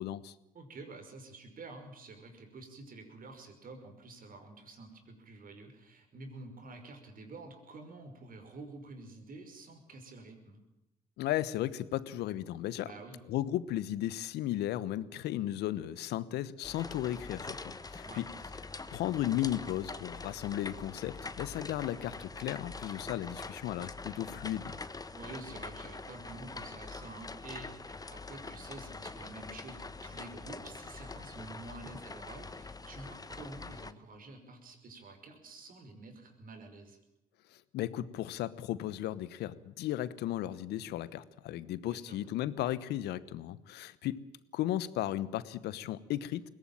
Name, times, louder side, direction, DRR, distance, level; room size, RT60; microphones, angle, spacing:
voice 1, 0.0-0.3 11.2-12.9 13.3-18.2 18.9-24.8 37.7-44.2 44.5-46.4, left 13 dB, 75° left, 17 dB, 1.1 m, -35 dB
voice 2, 0.5-10.6 12.8-13.2 18.1-18.2 25.1-37.0 41.9-42.2, right 3 dB, 55° right, 6 dB, 5.7 m, -49 dB
sound 1, 16.6-33.9, left 3 dB, 20° left, 1.4 m, -44 dB
21.5 x 17.5 x 9.1 m, 0.89 s
hypercardioid pair, 55°, 17 cm